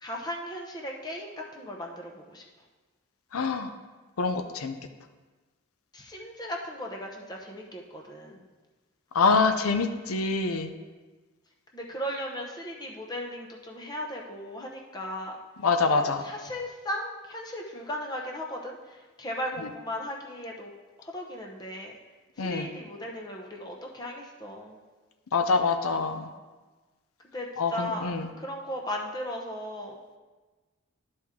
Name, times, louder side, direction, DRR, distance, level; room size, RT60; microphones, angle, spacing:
voice 1, 0.0-2.4 5.9-8.4 11.7-15.3 15.9-20.7 21.0-21.9 22.4-24.8 27.3-28.1 28.4-29.9, equal, 20° left, 0 dB, 0.7 m, -37 dB
voice 2, 3.3-3.7 4.2-4.7 9.1-10.7 15.6-16.2 22.4-22.7 25.3-26.3 27.6-28.3, left 4 dB, 90° left, 7 dB, 0.6 m, -25 dB
11.5 x 4.3 x 3.6 m, 1.3 s
head